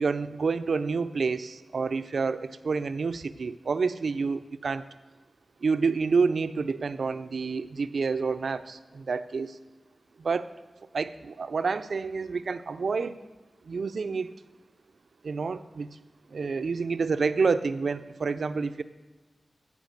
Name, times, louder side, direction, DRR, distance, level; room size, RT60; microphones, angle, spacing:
voice 1, 0.0-4.8 5.6-9.6 10.2-10.5 10.9-13.2 13.6-14.3 15.2-15.9 16.3-18.8, right 4 dB, 75° right, 12 dB, 0.5 m, -28 dB
14.5 x 5.1 x 6.6 m, 1.3 s
wide cardioid pair, 90°, 0 cm